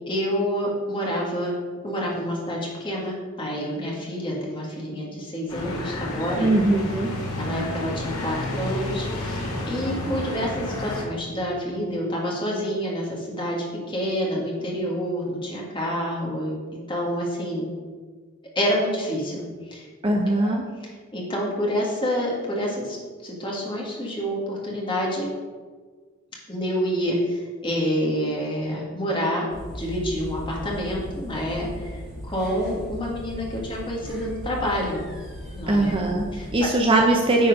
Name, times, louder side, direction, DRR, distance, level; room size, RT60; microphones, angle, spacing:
voice 1, 0.1-1.5 1.8-6.5 7.4-16.5 16.9-17.7 18.6-19.9 20.3-20.5 20.8-25.3 26.5-29.5 29.7-35.0 35.5-35.9 36.3-36.5, equal, 20° left, -3 dB, 1.7 m, -28 dB
sound 1, 5.5-11.0, left 1 dB, 85° left, 1.7 m, -31 dB
voice 2, 6.4-7.1 20.0-20.6 35.7-36.2 36.5-37.5, right 2 dB, 25° right, 1 dB, 0.5 m, -20 dB
sound 2, 29.5-36.6, equal, 5° right, 2.2 m, -37 dB
9.5 x 4.3 x 5.3 m, 1.5 s
head